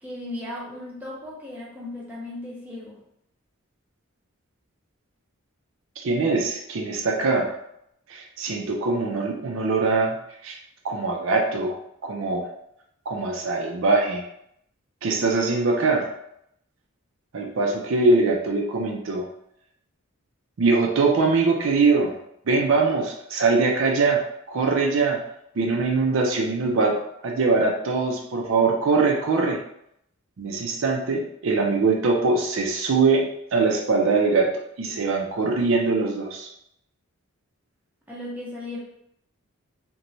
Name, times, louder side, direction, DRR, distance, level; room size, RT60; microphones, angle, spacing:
voice 1, 0.0-3.0 38.1-38.8, left 1 dB, 10° right, -6 dB, 0.6 m, -36 dB
voice 2, 6.0-7.5 8.1-10.2 10.4-10.6 10.8-12.5 13.1-14.2 15.0-16.1 17.3-19.3 20.6-22.2 22.5-25.2 25.6-27.0 27.2-29.6 30.4-34.5 34.8-36.5, right 3 dB, 65° right, 1 dB, 0.4 m, -22 dB
2.9 x 2.2 x 2.6 m, 0.74 s
head